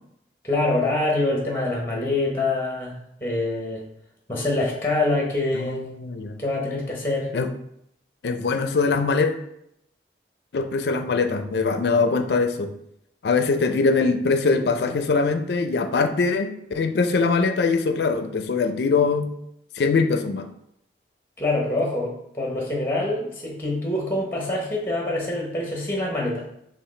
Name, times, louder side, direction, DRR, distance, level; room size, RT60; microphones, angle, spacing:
voice 1, 0.4-3.9 4.3-5.8 6.4-7.3 21.4-26.5, left 2 dB, 10° left, -1 dB, 0.9 m, -25 dB
voice 2, 5.5-6.4 7.3-7.5 8.2-9.3 10.5-12.7 13.2-19.3 19.8-20.5, left 4 dB, 70° left, 8 dB, 0.4 m, -22 dB
4.7 x 3.0 x 3.2 m, 0.76 s
head